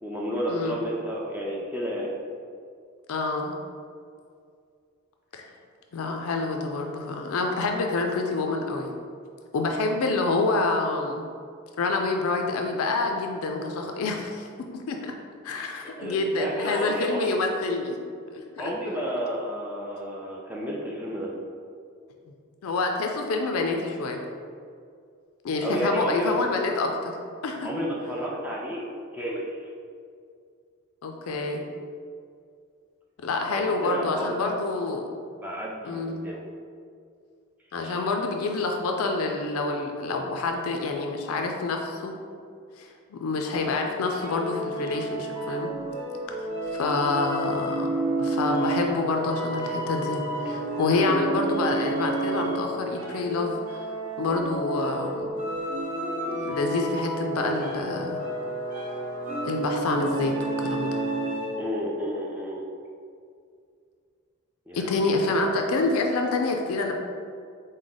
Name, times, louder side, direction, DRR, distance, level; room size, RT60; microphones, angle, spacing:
voice 1, 0.0-2.1 16.0-17.4 18.6-21.3 25.6-26.3 27.6-29.7 33.5-34.3 35.3-36.4 37.8-38.0 61.5-62.6 64.7-65.0, equal, 10° right, -4 dB, 0.4 m, -31 dB
voice 2, 3.1-3.6 5.3-5.5 5.9-8.9 9.5-11.3 11.8-14.5 14.7-15.1 15.4-18.0 18.3-18.7 22.6-24.2 25.4-27.1 27.4-27.7 31.0-31.6 33.2-35.0 35.9-36.2 37.7-42.1 42.8-45.7 46.7-47.9 48.2-53.9 54.2-55.3 56.3-58.3 59.5-61.0 64.7-66.9, left 3 dB, 85° left, 3 dB, 0.4 m, -27 dB
sound 1, 44.0-61.8, right 2 dB, 35° right, 0.7 m, -30 dB
4.8 x 2.1 x 3.8 m, 2.3 s
head